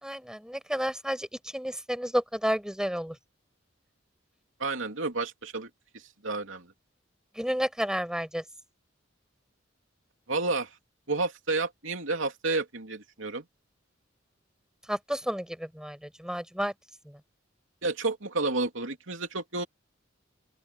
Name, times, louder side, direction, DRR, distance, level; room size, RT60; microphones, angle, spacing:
voice 1, 0.0-1.3 1.5-3.1 7.4-8.4 14.9-16.7, equal, 5° right, 7.3 m, -31 dB
voice 2, 4.6-6.7 10.3-10.7 11.1-13.4 17.8-19.6, right 3 dB, 75° right, 3.0 m, -31 dB
open air
head